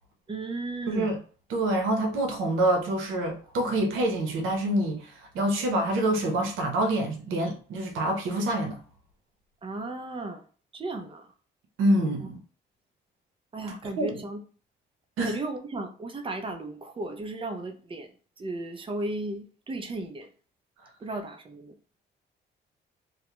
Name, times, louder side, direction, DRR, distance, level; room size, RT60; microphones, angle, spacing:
voice 1, 0.3-1.2 9.6-10.4 10.7-11.3 13.5-14.4 15.2-18.1 18.4-20.3 21.0-21.7, right 2 dB, 25° right, 0.5 m, -35 dB
voice 2, 1.5-8.8 11.8-12.4 14.0-14.2 15.2-15.4, right 1 dB, 90° right, 0.7 m, -26 dB
2.4 x 2.1 x 2.9 m
cardioid pair, 90°, 20 cm